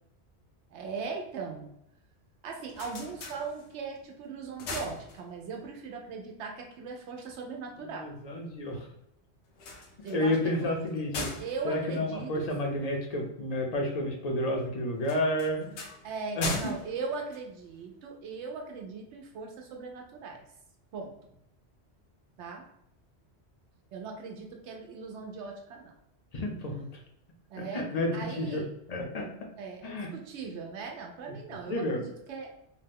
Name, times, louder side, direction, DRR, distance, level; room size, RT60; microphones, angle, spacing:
voice 1, 0.7-1.7 2.4-8.1 10.0-10.7 11.4-12.6 16.0-20.4 20.9-21.1 22.4-22.6 23.9-25.9 27.5-27.8 28.1-28.7 29.6-32.5, right 5 dB, 80° right, 1 dB, 0.9 m, -39 dB
sound 1, 2.4-4.0 4.4-5.7 9.5-12.9 15.0-18.1, left 3 dB, 80° left, 0.9 m, -40 dB
voice 2, 7.9-8.9 10.1-11.3 11.6-15.8 16.4-16.7 26.3-26.9 27.6-28.6 28.9-29.3 29.8-30.1 31.3-32.0, left 1 dB, 50° left, 1 dB, 0.5 m, -31 dB
2.7 x 2.1 x 3.4 m, 0.80 s
omnidirectional pair, 1.2 m